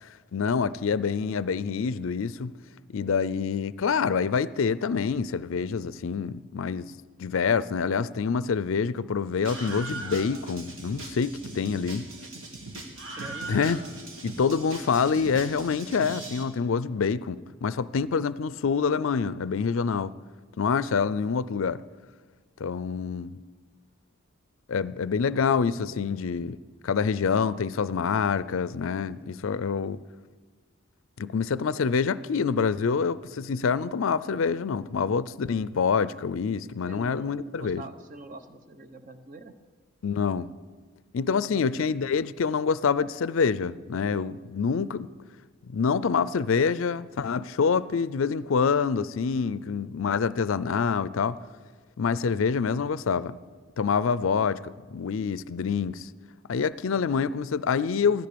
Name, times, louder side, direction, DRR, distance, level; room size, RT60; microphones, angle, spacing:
voice 1, 0.3-2.5 2.9-6.9 7.2-12.1 13.5-13.8 14.2-20.1 20.6-21.8 22.6-23.4 24.7-26.6 26.8-30.0 31.2-37.8 40.0-40.5 41.1-45.1 45.7-51.4 52.0-53.4 53.8-56.1 56.5-58.3, left 5 dB, 70° left, 0.4 m, -26 dB
Screaming, 9.4-16.4, right 2 dB, 70° right, 2.1 m, -39 dB
voice 2, 12.2-12.7 13.2-13.5 36.9-39.6, right 2 dB, 35° right, 0.9 m, -45 dB
15.5 x 13.5 x 6.8 m
head